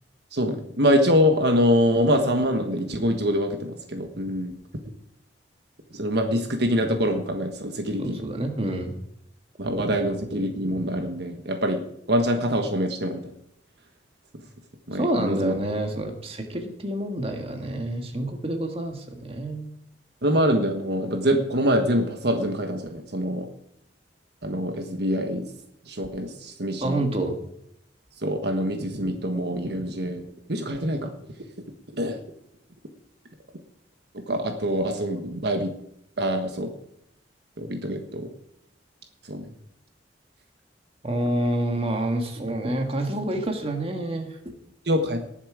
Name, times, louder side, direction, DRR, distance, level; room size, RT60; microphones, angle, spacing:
voice 1, 0.3-4.5 5.9-8.3 9.6-11.8 12.1-13.2 14.9-15.6 20.2-23.5 24.4-25.5 25.9-27.1 28.2-31.1 31.9-32.2 34.1-35.7 36.2-36.7 37.6-38.3 39.2-39.5 44.8-45.2, equal, 65° right, 4 dB, 1.4 m, -25 dB
voice 2, 8.0-9.0 15.0-19.7 26.8-27.3 41.0-44.5, right 1 dB, 35° right, 3 dB, 1.8 m, -28 dB
19.0 x 7.3 x 4.9 m, 0.75 s
head